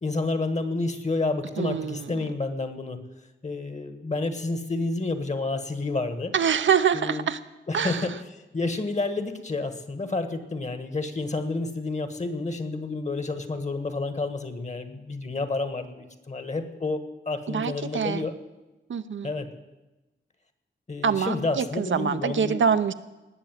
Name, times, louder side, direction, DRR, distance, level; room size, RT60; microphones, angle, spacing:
voice 1, 0.0-3.0 3.4-6.3 6.9-7.2 7.7-8.1 8.5-18.3 19.2-19.5 20.9-22.6, left 3 dB, 35° left, 9 dB, 1.6 m, -30 dB
voice 2, 1.6-2.3 6.3-7.4 7.7-8.2 17.5-18.3 18.9-19.3 21.0-22.9, right 7 dB, 75° right, 10 dB, 0.7 m, -25 dB
19.0 x 6.9 x 9.2 m, 1.1 s
wide cardioid pair, 105°, 20 cm